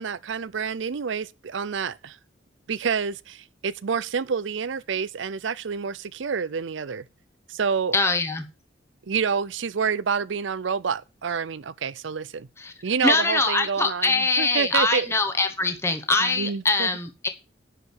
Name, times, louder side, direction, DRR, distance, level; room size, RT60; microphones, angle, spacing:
voice 1, 0.0-2.2 2.7-7.1 7.5-8.0 9.1-12.5 12.8-15.1 16.2-16.9, right 6 dB, 75° right, 0.5 m, -28 dB
voice 2, 7.9-8.5 12.6-12.7 13.0-17.3, left 3 dB, 15° left, 1.1 m, -23 dB
10.5 x 5.0 x 6.4 m
head